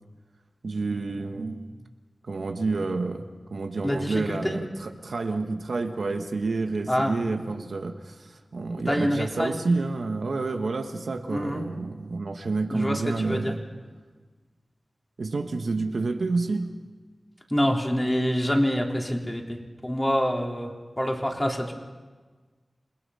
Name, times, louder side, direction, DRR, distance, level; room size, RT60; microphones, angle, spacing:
voice 1, 0.6-1.7 2.3-3.2 3.5-13.6 15.2-16.7, right 3 dB, 85° right, 5 dB, 1.5 m, -29 dB
voice 2, 3.8-4.6 6.9-7.1 8.8-9.6 11.3-11.6 12.7-13.5 17.5-19.6 19.8-20.7 21.0-21.7, equal, 15° left, 1 dB, 3.3 m, -26 dB
28.0 x 20.0 x 5.7 m, 1.4 s
wide cardioid pair, 60°, 0 cm